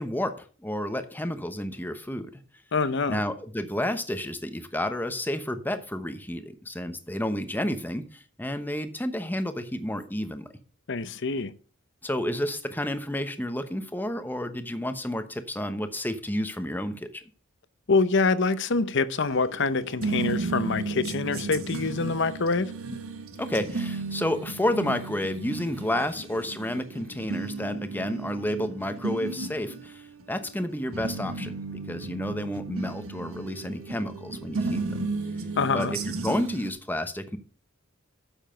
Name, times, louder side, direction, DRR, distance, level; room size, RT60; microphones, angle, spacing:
voice 1, 0.0-2.3 3.1-10.5 12.0-17.2 23.4-31.6 31.9-35.0 35.7-37.4, left 1 dB, 10° left, 1.0 m, -31 dB
voice 2, 2.7-3.2 10.9-11.5 17.9-22.7 35.6-35.9, left 4 dB, 60° left, 0.8 m, -25 dB
sound 1, 19.2-36.7, right 3 dB, 85° right, 1.6 m, -34 dB
9.0 x 7.2 x 5.6 m
head